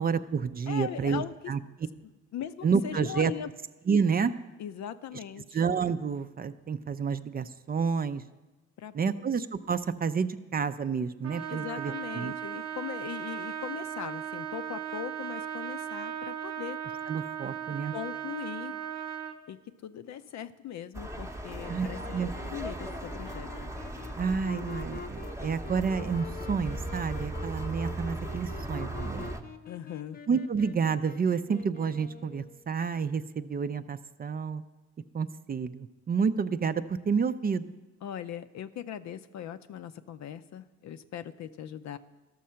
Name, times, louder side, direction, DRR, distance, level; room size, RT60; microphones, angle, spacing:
voice 1, 0.0-1.6 2.6-3.3 3.9-4.3 5.5-8.2 8.9-12.3 17.1-17.9 21.6-22.3 24.2-29.3 30.3-34.6 35.1-37.7, right 6 dB, 30° right, 11 dB, 0.4 m, -29 dB
voice 2, 0.7-1.5 2.3-3.5 4.6-5.6 8.8-9.2 11.5-16.8 17.9-18.8 19.5-23.5 29.6-30.2 38.0-42.0, left 10 dB, 65° left, 12 dB, 0.6 m, -40 dB
Trumpet, 11.2-19.4, right 9 dB, 60° right, 0.8 m, -37 dB
sound 1, 20.9-29.4, right 1 dB, 10° right, 0.8 m, -37 dB
Wind instrument woodwind instrument, 21.5-32.7, left 6 dB, 30° left, 0.7 m, -46 dB
13.5 x 6.3 x 5.7 m, 1.1 s
cardioid pair, 90°, 30 cm